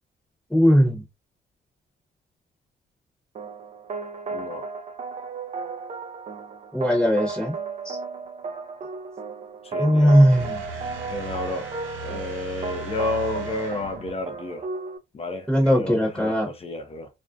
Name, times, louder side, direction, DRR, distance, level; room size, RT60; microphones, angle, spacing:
voice 1, 0.5-1.0 6.7-7.5 7.8-8.0 9.8-10.6 15.5-16.5, equal, 5° left, 0.9 m, -19 dB
sound 1, 3.3-15.0, right 4 dB, 35° right, 0.4 m, -34 dB
voice 2, 4.3-4.7 9.6-10.1 11.1-11.7 12.0-14.6 15.1-17.1, left 2 dB, 30° left, 0.4 m, -31 dB
sound 2, 10.3-14.2, right 2 dB, 80° right, 0.8 m, -38 dB
2.5 x 2.0 x 2.4 m
cardioid pair, 90°, 20 cm